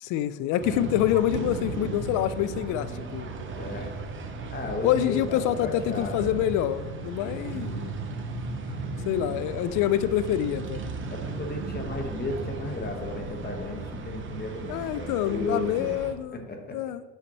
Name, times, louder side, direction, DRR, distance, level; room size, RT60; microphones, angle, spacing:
voice 1, 0.0-3.3 4.8-7.9 9.1-10.8 14.7-16.4 16.7-17.0, left 12 dB, 55° left, 14 dB, 0.5 m, -26 dB
sound 1, 0.6-16.1, right 4 dB, 35° right, 0.9 m, -36 dB
voice 2, 3.6-3.9 4.5-6.5 7.1-7.8 11.1-16.0 16.3-16.8, left 2 dB, 25° left, 3 dB, 1.4 m, -34 dB
6.3 x 5.7 x 3.1 m, 1.2 s
supercardioid pair, 80°, 37 cm